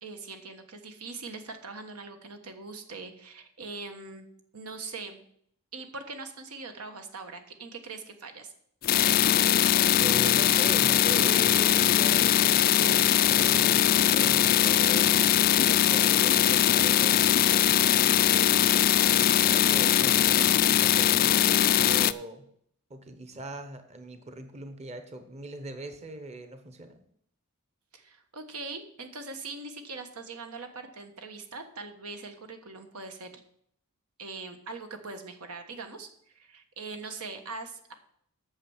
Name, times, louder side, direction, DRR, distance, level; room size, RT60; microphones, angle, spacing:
voice 1, 0.0-4.3 4.5-5.2 5.7-8.5 27.9-33.4 34.2-36.1 36.3-37.9, right 3 dB, 85° right, 6 dB, 1.3 m, -41 dB
sound 1, 8.8-22.1, left 11 dB, 40° left, 0.3 m, -21 dB
voice 2, 10.0-17.2 17.4-18.3 19.1-22.4 22.9-27.0, right 2 dB, 30° right, 7 dB, 0.9 m, -41 dB
8.8 x 6.7 x 7.2 m, 0.68 s
head